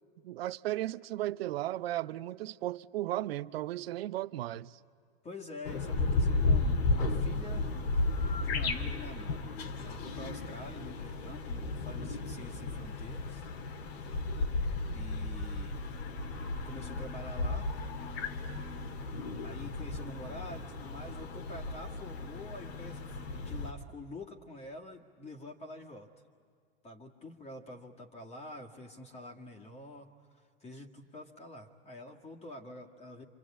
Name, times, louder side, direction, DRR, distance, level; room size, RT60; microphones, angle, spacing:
voice 1, 0.2-4.8, right 14 dB, 75° right, 0.7 m, -35 dB
voice 2, 5.2-7.8 8.4-9.5 9.8-13.5 14.9-15.8 16.6-17.7 19.4-26.1 26.8-33.2, left 2 dB, 20° left, 1.9 m, -47 dB
sound 1, 5.7-23.7, left 3 dB, 75° left, 1.8 m, -34 dB
27.0 x 25.5 x 8.6 m
hypercardioid pair, 100°, 31 cm